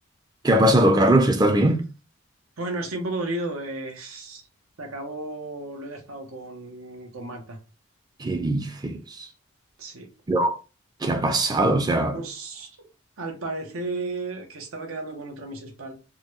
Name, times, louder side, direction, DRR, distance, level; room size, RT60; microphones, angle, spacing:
voice 1, 0.4-1.8 8.2-9.0 10.3-10.6 11.0-12.2, right 1 dB, 20° right, 0.4 m, -20 dB
voice 2, 2.6-4.4 4.8-7.6 9.8-10.1 12.1-12.9 13.2-15.9, right 2 dB, 90° right, 1.0 m, -33 dB
3.7 x 2.2 x 3.1 m
head